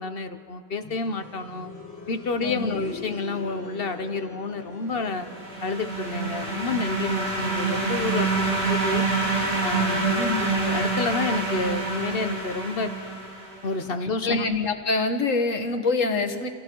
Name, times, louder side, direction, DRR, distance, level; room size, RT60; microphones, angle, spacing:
voice 1, 0.0-1.7 2.1-5.3 5.6-9.0 9.6-10.1 10.6-12.9 13.6-14.4, left 3 dB, 50° left, 9 dB, 1.3 m, -29 dB
sound 1, 0.8-11.6 13.0-13.1, left 1 dB, 15° left, 4.3 m, -44 dB
voice 2, 2.4-2.9 10.2-10.7 14.2-16.5, left 3 dB, 85° left, 6 dB, 1.9 m, -26 dB
sound 2, 5.1-13.7, right 3 dB, 85° right, 4.1 m, -27 dB
29.5 x 29.0 x 4.7 m, 2.3 s
omnidirectional pair, 1.3 m